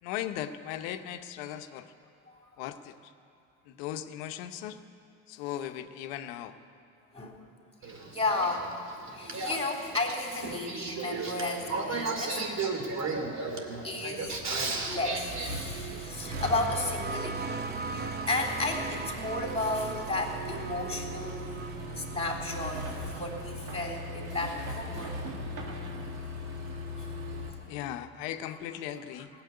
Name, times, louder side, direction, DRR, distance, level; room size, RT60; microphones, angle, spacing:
voice 1, 0.0-1.9 2.6-3.1 3.6-4.8 5.3-6.6 27.7-29.3, left 11 dB, 75° left, 9 dB, 0.9 m, -38 dB
Male speech man speaking / Female speech woman speaking / Conversation, 7.8-15.5, right 3 dB, 45° right, 2.4 m, -34 dB
voice 2, 8.1-8.7 9.1-12.4 12.8-12.9 13.8-14.4 14.9-17.6 17.9-21.6 22.0-25.2, left 2 dB, 15° left, -1 dB, 3.5 m, -33 dB
Accelerating revving vroom, 14.3-27.5, equal, 90° right, 2.0 m, -39 dB
sound 1, 15.9-25.2 26.3-26.4, right 4 dB, 25° right, 0.8 m, -41 dB
17.5 x 7.6 x 9.6 m, 2.5 s
hypercardioid pair, 65°, 39 cm